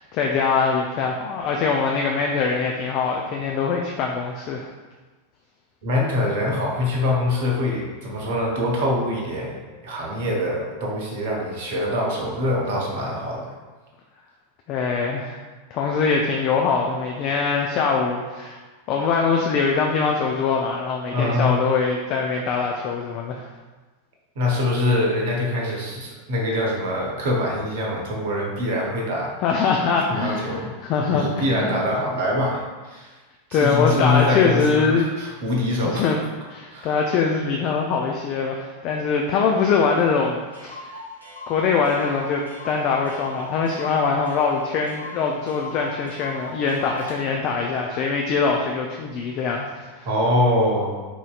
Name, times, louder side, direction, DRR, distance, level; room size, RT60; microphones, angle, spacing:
voice 1, 0.0-4.7 14.7-15.4 15.7-18.6 18.9-23.5 29.4-31.8 33.5-35.1 35.8-36.2 36.5-40.9 41.5-50.1, left 5 dB, 40° left, 0 dB, 0.3 m, -23 dB
voice 2, 5.8-13.5 21.1-21.6 24.4-29.3 30.1-30.7 31.1-33.1 33.5-36.1 36.7-36.9 50.1-51.0, left 1 dB, 50° right, -1 dB, 0.8 m, -24 dB
Clock, 40.0-40.1 40.3-40.4 40.5-47.2, left 2 dB, 85° left, 0.7 m, -39 dB
4.3 x 2.7 x 2.4 m, 1.3 s
figure-of-eight pair, 90°, 0 cm